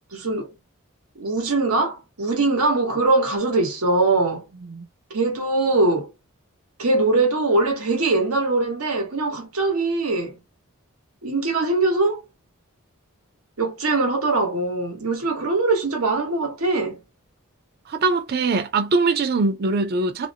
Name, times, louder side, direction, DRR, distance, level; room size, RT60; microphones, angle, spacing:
voice 1, 0.1-0.5 1.2-4.4 5.1-6.1 6.8-10.3 11.2-12.2 13.6-17.0, right 2 dB, 85° right, 1.0 m, -22 dB
voice 2, 17.9-20.3, right 3 dB, 45° right, 0.4 m, -22 dB
2.5 x 2.1 x 2.7 m
head